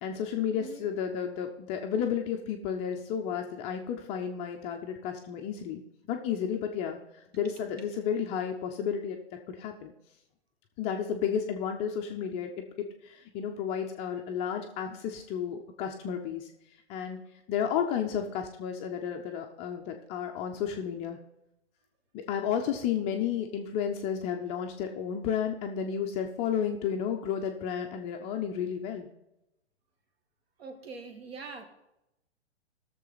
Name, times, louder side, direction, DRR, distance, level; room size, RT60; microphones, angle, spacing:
voice 1, 0.0-5.8 6.1-9.2 9.5-9.9 10.8-16.5 16.9-17.2 17.5-21.2 22.1-29.1, left 8 dB, 20° left, 3 dB, 0.5 m, -32 dB
voice 2, 0.5-0.9 7.4-7.9 30.6-31.6, right 4 dB, 55° right, 6 dB, 2.1 m, -44 dB
17.5 x 6.8 x 4.0 m, 0.88 s
figure-of-eight pair, 125°, 35 cm